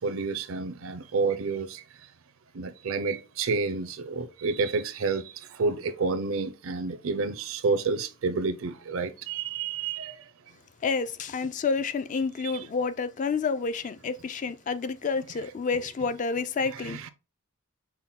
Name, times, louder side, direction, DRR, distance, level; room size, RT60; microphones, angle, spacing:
voice 1, 0.0-1.8 2.5-10.2 12.5-12.6 16.8-17.1, right 4 dB, 70° right, 0.5 m, -29 dB
voice 2, 10.8-17.0, left 4 dB, 35° left, 0.3 m, -29 dB
5.7 x 2.2 x 3.7 m
head